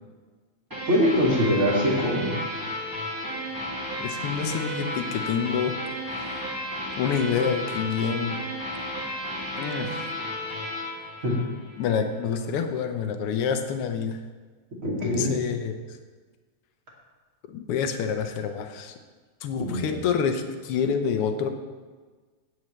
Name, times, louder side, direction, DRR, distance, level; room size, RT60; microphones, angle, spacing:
sound 1, 0.7-12.0, equal, 10° right, 1.6 m, -33 dB
voice 1, 0.9-2.4 11.2-11.4 14.8-15.4 19.7-19.9, equal, 30° right, -4 dB, 2.5 m, -23 dB
voice 2, 4.0-5.7 6.0-6.5 7.0-8.4 9.5-10.1 11.8-14.2 15.0-16.0 17.5-19.0 19.4-21.5, left 6 dB, 75° left, 6 dB, 1.4 m, -27 dB
17.0 x 7.8 x 3.2 m, 1.4 s
omnidirectional pair, 3.4 m